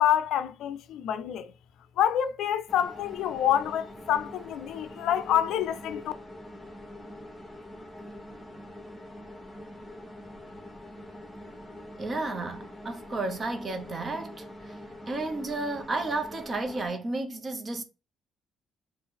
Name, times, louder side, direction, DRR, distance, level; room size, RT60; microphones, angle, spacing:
voice 1, 0.0-1.5 2.0-6.1, left 10 dB, 85° left, 0.4 m, -27 dB
sound 1, 2.7-16.9, left 1 dB, 15° left, 1.1 m, -44 dB
voice 2, 12.0-14.8 15.1-17.8, right 2 dB, 40° right, 0.9 m, -32 dB
3.7 x 2.4 x 4.2 m
cardioid pair, 90°, 0 cm